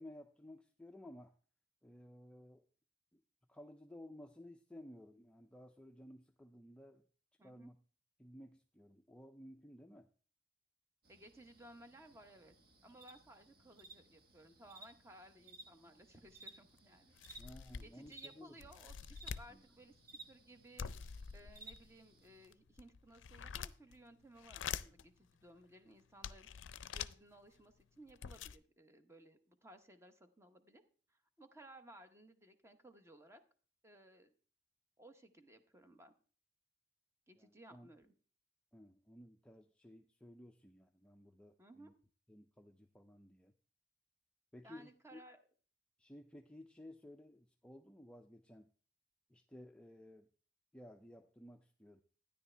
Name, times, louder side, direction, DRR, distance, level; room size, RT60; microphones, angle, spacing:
voice 1, 0.0-1.4 1.8-2.7 3.1-3.2 3.5-7.0 7.4-7.8 8.2-10.1 17.4-18.6 19.5-19.7 37.4-37.9 38.7-41.9 42.3-43.5 44.5-45.2 46.0-48.7 49.3-50.3 50.7-52.0, left 1 dB, 5° left, 5 dB, 0.4 m, -56 dB
voice 2, 7.4-7.7 11.1-12.5 12.8-17.5 17.8-19.9 20.3-20.9 21.3-26.5 26.8-30.8 31.1-33.4 33.8-34.3 35.0-36.1 37.3-38.1 41.6-41.9 44.6-45.4, right 1 dB, 15° right, 8 dB, 0.9 m, -59 dB
sound 1, 11.0-22.5, right 2 dB, 50° right, 1.4 m, -59 dB
sound 2, 16.3-16.4 16.8-16.9 17.2-18.1 18.6-19.5 20.8-21.9 22.4-24.0 24.4-25.0 25.6-25.7 26.2-27.1 27.8-27.9 28.1-28.6, left 7 dB, 85° left, 0.4 m, -46 dB
12.5 x 10.0 x 3.3 m, 0.41 s
head